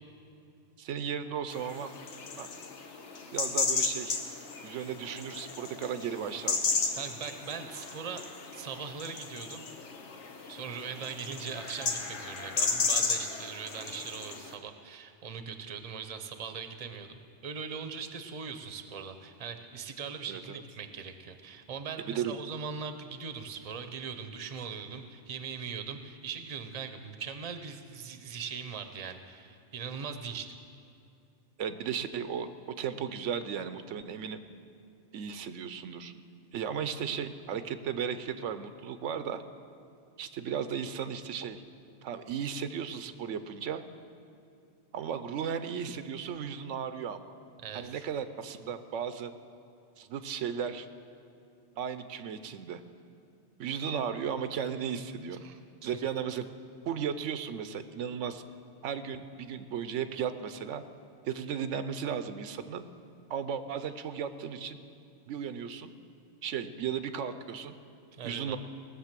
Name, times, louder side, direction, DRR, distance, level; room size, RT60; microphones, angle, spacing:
voice 1, 0.8-1.9 2.4-2.5 3.3-4.2 4.6-6.6 20.3-20.6 22.1-22.4 31.6-34.4 35.1-36.1 36.5-39.4 40.2-41.6 42.0-43.8 44.9-47.2 47.7-49.3 50.0-50.9 51.7-52.8 53.6-55.5 55.8-56.4 56.9-58.4 58.8-60.8 61.3-62.9 63.3-64.8 65.3-65.9 66.4-67.7 68.2-68.6, right 7 dB, 85° right, 11 dB, 1.0 m, -35 dB
sound 1, 1.5-14.5, left 4 dB, 70° left, 1.3 m, -34 dB
voice 2, 6.9-8.2 8.5-9.6 10.5-30.5 47.6-48.0 55.4-56.0 68.1-68.6, right 6 dB, 35° right, 8 dB, 0.7 m, -40 dB
18.0 x 6.9 x 7.4 m, 2.5 s
omnidirectional pair, 1.2 m